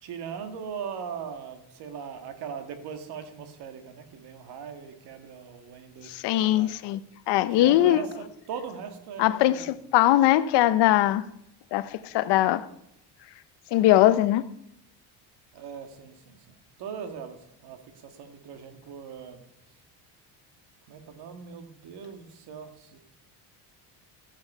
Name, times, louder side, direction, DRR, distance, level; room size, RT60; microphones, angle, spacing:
voice 1, 0.0-6.8 7.5-9.8 15.5-19.7 20.9-23.0, right 7 dB, 70° right, 2.0 m, -40 dB
voice 2, 6.0-7.0 7.3-8.0 9.2-11.2 11.7-12.7 13.7-14.4, left 14 dB, 80° left, 0.9 m, -21 dB
14.0 x 9.6 x 5.5 m
cardioid pair, 155°, 41 cm